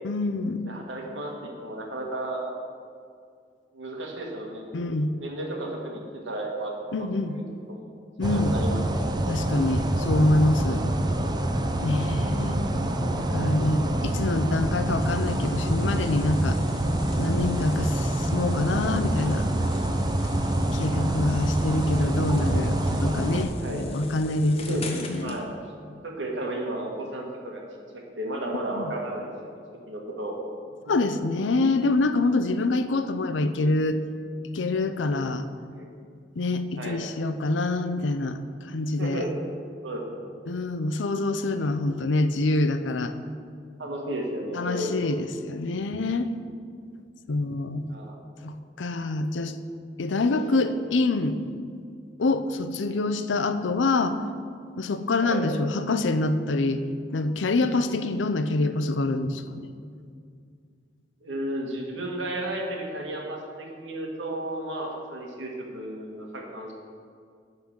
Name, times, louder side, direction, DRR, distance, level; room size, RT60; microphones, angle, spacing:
voice 1, 0.0-0.6 4.7-5.1 6.9-7.4 8.2-8.6 9.3-10.8 11.8-12.6 13.2-16.6 17.2-19.5 20.7-25.4 28.7-28.9 30.9-34.0 34.5-35.5 36.4-39.2 40.5-43.2 44.5-46.3 47.3-47.9 48.4-49.5 50.0-51.4 52.2-54.2 54.8-56.8 57.1-59.7, left 2 dB, 90° left, 10 dB, 0.6 m, -26 dB
voice 2, 0.6-2.6 3.7-4.6 5.2-6.9 7.3-7.9 8.3-8.8 9.1-9.2 13.0-13.1 13.3-13.6 23.6-23.8 24.5-25.5 26.0-27.6 27.9-29.3 29.9-30.4 35.7-35.9 36.8-37.0 39.0-39.3 39.8-40.3 41.4-41.5 43.8-45.2 47.9-48.2 50.5-50.7 55.2-55.5 61.2-66.7, right 1 dB, 90° right, 0 dB, 1.7 m, -33 dB
sound 1, 8.2-23.5, right 1 dB, 25° right, 0.5 m, -26 dB
sound 2, 15.0-25.4, left 3 dB, 35° left, 0.9 m, -43 dB
11.5 x 3.9 x 7.4 m, 2.2 s
head